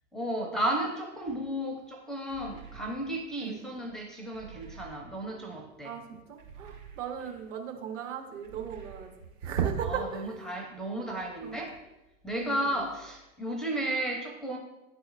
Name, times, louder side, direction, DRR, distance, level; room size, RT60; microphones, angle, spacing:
voice 1, 0.1-5.9 9.9-11.8 12.2-14.6, right 1 dB, ahead, 1 dB, 0.5 m, -33 dB
sound 1, 2.3-3.4 4.3-5.4 6.4-7.5 8.4-9.5, right 7 dB, 70° right, 2.1 m, -50 dB
voice 2, 5.8-9.1 9.4-10.4 11.4-11.6 12.4-12.8, right 7 dB, 55° right, 3 dB, 1.3 m, -36 dB
10.0 x 4.1 x 2.5 m, 0.97 s
figure-of-eight pair, 100°, 44 cm